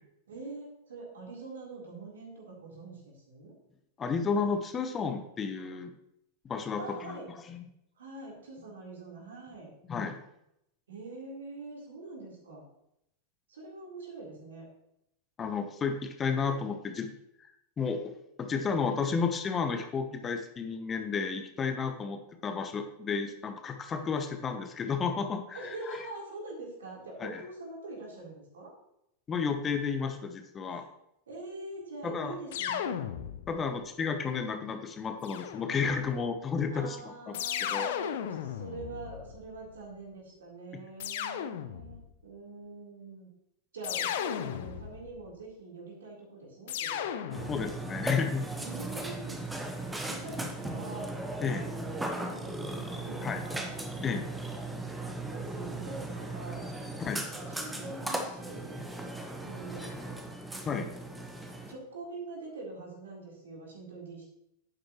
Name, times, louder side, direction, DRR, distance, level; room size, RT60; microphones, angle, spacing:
voice 1, 0.3-3.5 6.8-7.3 8.0-9.7 10.9-12.6 13.5-14.7 25.5-28.7 30.7-30.8 31.3-33.0 36.7-43.3 43.7-47.1 48.6-49.5 49.9-51.1 51.5-53.7 55.3-56.7 57.3-58.8 59.4-60.3 61.7-64.2, right 3 dB, 65° right, -3 dB, 3.8 m, -44 dB
voice 2, 4.0-5.9 6.4-7.1 7.5-7.6 9.9-10.2 15.4-17.1 17.4-17.5 17.8-18.1 18.4-26.0 27.2-27.4 29.3-30.8 32.0-32.3 33.5-37.9 47.5-48.5 51.4-51.7 53.2-53.4 54.0-54.3 57.0-57.3 60.7-60.9, left 5 dB, 20° left, 7 dB, 1.0 m, -32 dB
sound 1, 32.5-33.7 35.2-36.1 37.3-39.7 41.0-42.1 43.8-45.2 46.7-47.9, left 9 dB, 55° left, 0.7 m, -35 dB
Burping eructation, 47.3-61.7, right 2 dB, 5° right, 1.3 m, -37 dB
11.0 x 9.0 x 3.1 m, 0.79 s
figure-of-eight pair, 90°, 0 cm